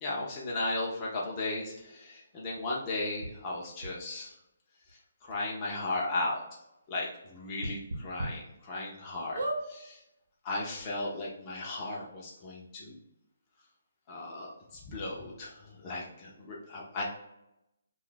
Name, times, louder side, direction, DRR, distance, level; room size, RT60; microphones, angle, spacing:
voice 1, 0.0-4.4 4.9-6.4 6.9-10.0 10.4-13.0 14.1-17.0, left 2 dB, 20° left, -4 dB, 0.7 m, -36 dB
sound 1, 3.2-3.3 3.8-3.9 4.9-5.0 5.3-5.4 5.8-5.9 7.6-8.3 8.8-8.9 9.3-9.6 10.5-10.6 10.7-10.8, right 1 dB, 80° right, 0.8 m, -34 dB
2.5 x 2.4 x 3.8 m, 0.87 s
hypercardioid pair, 165°, 0 cm